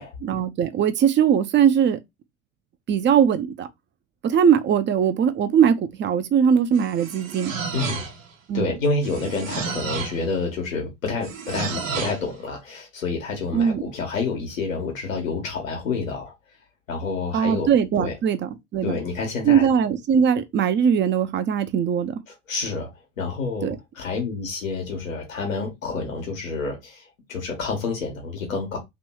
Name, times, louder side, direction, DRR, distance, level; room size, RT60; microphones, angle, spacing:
voice 1, 0.0-2.0 2.9-3.7 4.2-7.5 8.5-8.7 13.5-13.8 17.3-19.0 19.4-22.2 23.6-23.8, right 8 dB, 30° right, 0.7 m, -20 dB
sound 1, 6.7-8.3 9.0-10.3 11.2-12.3, right 5 dB, 75° right, 1.0 m, -31 dB
voice 2, 7.7-8.0 8.5-16.3 16.9-17.7 18.0-18.1 18.8-19.7 22.3-22.9 23.2-28.8, left 4 dB, 75° left, 1.4 m, -28 dB
3.2 x 3.0 x 4.5 m
figure-of-eight pair, 65°, 39 cm